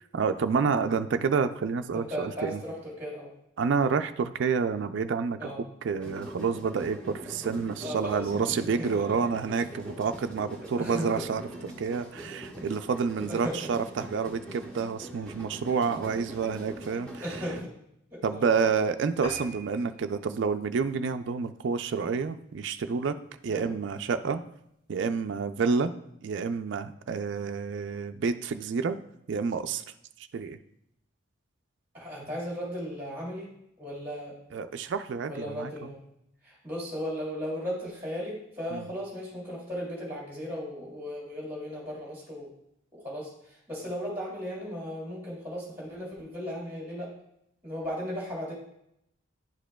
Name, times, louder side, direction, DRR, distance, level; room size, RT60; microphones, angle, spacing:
voice 1, 0.1-2.6 3.6-5.4 5.8-11.4 11.8-17.2 18.2-23.1 23.4-24.4 24.9-25.9 26.2-29.0 29.3-29.8 30.3-30.6 34.5-35.9 38.7-38.9, right 5 dB, 60° right, 8 dB, 0.3 m, -29 dB
voice 2, 1.9-3.3 5.4-5.6 7.8-9.1 10.8-11.3 13.3-13.7 17.2-17.7 18.1-18.7 23.5-23.7 25.7-25.8 31.9-33.5 33.8-34.4 35.3-36.0 36.4-42.5 42.9-47.1 47.6-48.5, equal, 10° right, -4 dB, 2.4 m, -36 dB
sound 1, 6.0-17.6, right 1 dB, 5° left, 1.3 m, -43 dB
sound 2, 19.2-22.0 22.4-22.6 23.1-23.2 23.5-23.6 23.8-23.9, right 1 dB, 75° left, 2.0 m, -44 dB
10.5 x 4.9 x 2.2 m, 0.77 s
head